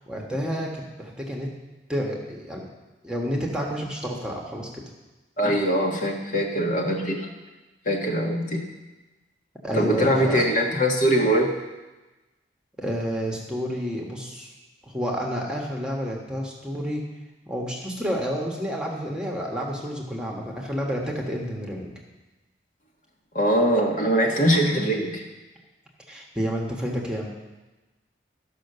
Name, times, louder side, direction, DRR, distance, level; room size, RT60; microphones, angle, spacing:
voice 1, 0.0-1.5 1.9-2.6 3.0-4.8 9.6-10.4 12.8-14.5 14.9-17.0 17.5-21.9 26.1-27.3, equal, 5° right, -1 dB, 1.3 m, -30 dB
voice 2, 5.4-7.3 7.8-8.6 9.7-11.5 23.3-25.2, equal, 45° left, 0 dB, 1.5 m, -22 dB
13.5 x 5.8 x 6.7 m, 1.1 s
head